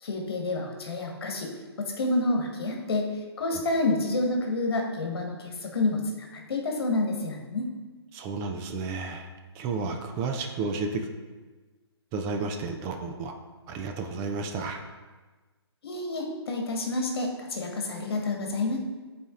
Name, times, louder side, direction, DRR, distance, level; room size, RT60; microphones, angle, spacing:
voice 1, 0.0-1.5 1.8-7.7 15.8-18.8, left 2 dB, 60° left, 1 dB, 1.3 m, -29 dB
voice 2, 8.1-9.3 9.5-11.1 12.1-13.3 13.7-14.8, right 4 dB, 15° right, 4 dB, 0.4 m, -32 dB
11.0 x 4.3 x 2.4 m, 1.3 s
figure-of-eight pair, 140°, 14 cm